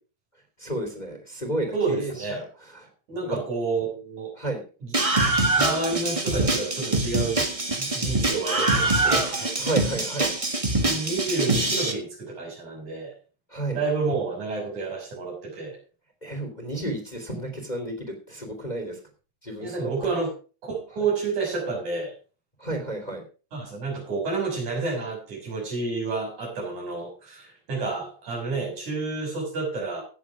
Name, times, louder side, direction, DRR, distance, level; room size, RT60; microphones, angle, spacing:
voice 1, 0.6-2.4 2.7-2.9 3.2-3.4 4.4-4.6 9.6-10.3 13.5-13.8 16.2-19.0 19.4-19.9 22.6-23.2, right 1 dB, 15° left, 5 dB, 2.8 m, -31 dB
voice 2, 1.7-2.5 3.1-4.3 4.8-4.9 5.6-7.5 7.8-10.0 10.8-13.1 13.7-15.8 19.6-20.3 20.6-22.1 23.5-30.0, right 3 dB, 85° right, -2 dB, 7.8 m, -29 dB
Screaming, 4.9-11.9, right 2 dB, 25° right, 0.7 m, -24 dB
16.5 x 7.2 x 4.8 m, 0.35 s
omnidirectional pair, 3.3 m